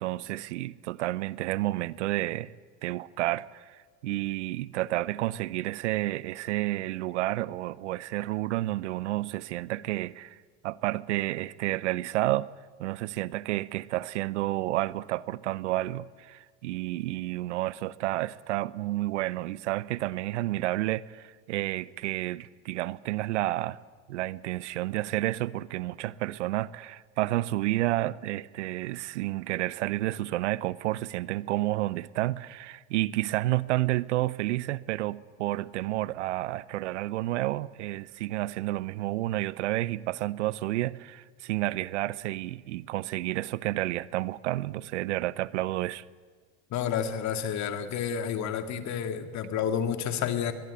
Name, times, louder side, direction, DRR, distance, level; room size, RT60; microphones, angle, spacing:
voice 1, 0.0-2.5 2.8-3.8 4.0-10.4 10.6-12.5 12.8-23.8 24.1-46.0, right 17 dB, 85° right, 0.7 m, -30 dB
voice 2, 46.7-50.5, left 8 dB, 55° left, 2.3 m, -30 dB
22.5 x 20.0 x 8.3 m
hypercardioid pair, 85°, 35 cm